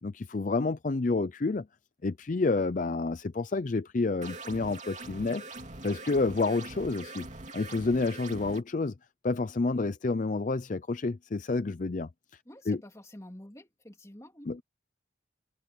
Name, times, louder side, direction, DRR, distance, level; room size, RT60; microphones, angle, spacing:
voice 1, 0.0-1.7 2.0-5.4 5.8-7.3 7.5-8.9 9.2-12.1 12.7-12.8 14.5-14.6, left 3 dB, 45° left, 0.5 m, -29 dB
sound 1, 4.2-8.6, right 2 dB, 40° right, 2.7 m, -43 dB
voice 2, 12.5-14.5, left 1 dB, 15° left, 2.4 m, -48 dB
head